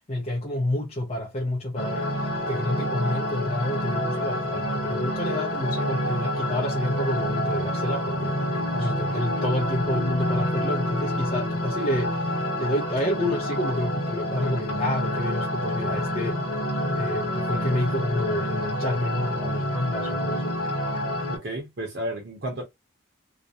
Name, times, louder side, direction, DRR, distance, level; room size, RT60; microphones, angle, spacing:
voice 1, 0.0-8.4 8.7-12.3 12.6-16.4 17.0-20.6, left 1 dB, 30° left, 0.5 m, -29 dB
sound 1, 1.8-21.4, left 1 dB, 90° left, 1.0 m, -28 dB
voice 2, 21.3-22.6, right 1 dB, 55° right, 0.7 m, -32 dB
2.4 x 2.1 x 2.6 m
head